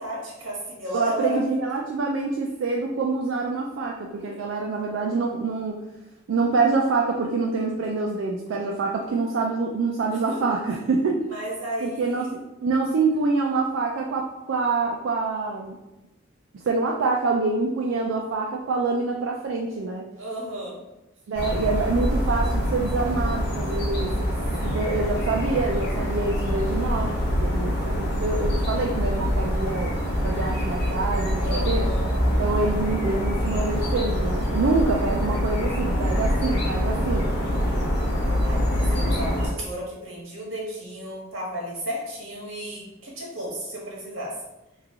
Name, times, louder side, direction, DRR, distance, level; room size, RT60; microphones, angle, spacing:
voice 1, 0.0-1.4 1.7-1.8 4.3-4.4 10.1-10.4 11.3-12.3 20.2-20.8 24.6-24.9 31.4-32.2 38.4-44.4, equal, 90° right, -3 dB, 1.2 m, -33 dB
voice 2, 0.9-5.8 6.3-11.2 11.8-15.8 16.6-20.0 21.3-24.3 24.6-29.9 30.2-31.9 32.4-37.3, right 3 dB, 70° right, 0 dB, 0.4 m, -26 dB
sound 1, 21.3-39.5, equal, 55° left, 0.8 m, -25 dB
3.1 x 2.4 x 3.6 m, 0.96 s
head